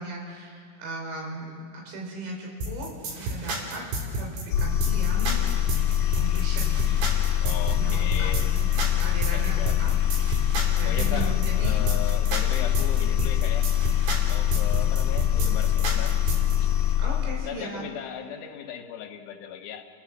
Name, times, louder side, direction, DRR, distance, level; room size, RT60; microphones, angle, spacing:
voice 1, 0.0-2.9 3.2-3.8 4.1-5.8 6.1-6.8 7.7-8.3 8.6-9.9 10.7-11.8 17.0-17.8, right 2 dB, 80° right, 0 dB, 7.0 m, -37 dB
sound 1, 2.6-16.6, right 2 dB, 65° right, 5.2 m, -31 dB
sound 2, 4.5-17.5, left 11 dB, 55° left, 2.8 m, -24 dB
voice 2, 7.4-8.6 9.3-9.8 10.9-13.7 14.2-16.2 17.4-19.9, left 9 dB, 75° left, 4 dB, 3.5 m, -37 dB
30.0 x 16.5 x 7.3 m, 2.2 s
omnidirectional pair, 5.7 m